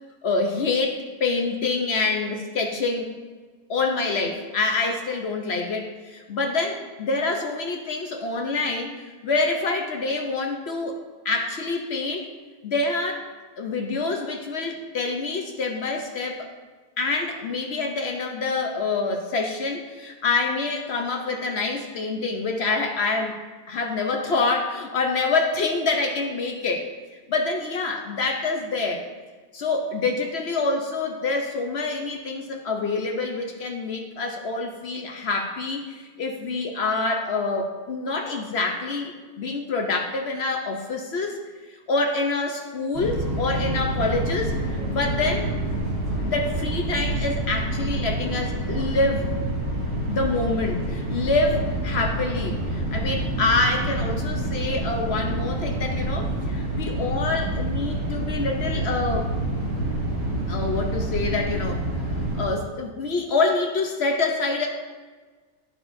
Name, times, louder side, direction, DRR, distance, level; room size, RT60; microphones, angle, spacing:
voice 1, 0.2-3.1 3.7-9.0 9.2-12.3 12.6-13.2 13.6-16.5 17.0-23.4 23.7-26.9 27.3-29.0 29.5-41.4 41.9-45.5 46.2-49.3 50.1-59.3 60.5-61.8 62.4-64.7, left 3 dB, 60° left, 2 dB, 0.7 m, -26 dB
sound 1, 42.9-62.4, right 1 dB, 90° right, 2.7 m, -27 dB
9.9 x 6.1 x 2.6 m, 1.4 s
omnidirectional pair, 1.8 m